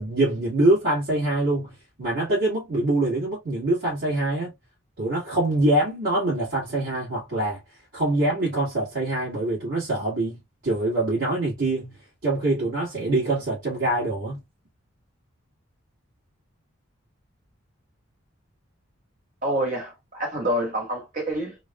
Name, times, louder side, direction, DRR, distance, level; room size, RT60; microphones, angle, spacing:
voice 1, 0.0-4.5 5.0-7.6 7.9-11.9 12.2-14.4, right 2 dB, 65° right, 1.9 m, -24 dB
voice 2, 19.4-21.6, right 1 dB, 35° right, 1.6 m, -27 dB
3.9 x 2.5 x 2.3 m
head